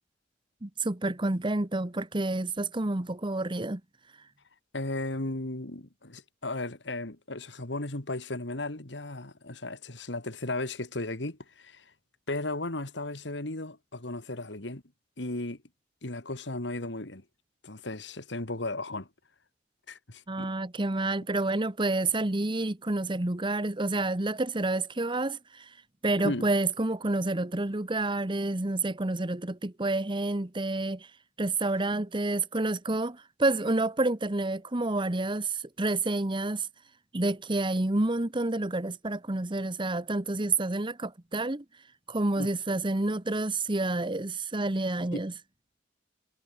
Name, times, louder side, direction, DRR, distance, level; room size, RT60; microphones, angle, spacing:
voice 1, 0.6-3.8 20.3-25.7 26.0-31.1 31.4-36.7 37.1-41.6 42.1-45.3, right 2 dB, 25° right, 1.2 m, -29 dB
voice 2, 4.7-11.8 12.3-14.8 15.2-15.6 16.0-17.2 17.6-19.1 19.9-20.5 26.2-26.5 42.4-42.5 45.1-45.2, left 2 dB, 75° left, 2.5 m, -35 dB
head